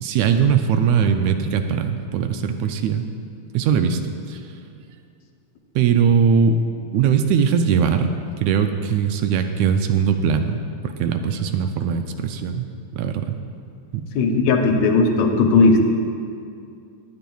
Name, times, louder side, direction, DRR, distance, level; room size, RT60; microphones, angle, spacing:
voice 1, 0.0-3.1 3.5-4.4 5.8-6.6 6.9-8.1 8.4-10.6 10.8-13.4 13.9-14.1, right 7 dB, 80° right, 7 dB, 1.8 m, -20 dB
voice 2, 14.2-15.8, left 3 dB, 75° left, 3 dB, 2.0 m, -16 dB
19.0 x 10.0 x 2.3 m, 2.4 s
omnidirectional pair, 3.4 m